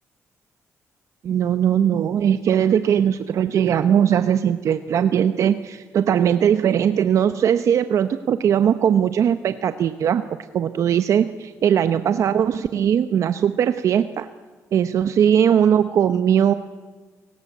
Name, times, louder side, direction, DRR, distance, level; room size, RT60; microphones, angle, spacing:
voice 1, 1.2-10.2 10.5-14.3 14.7-16.5, right 9 dB, 60° right, 11 dB, 0.8 m, -19 dB
30.0 x 17.5 x 8.4 m, 1.4 s
cardioid pair, 140°, 6 cm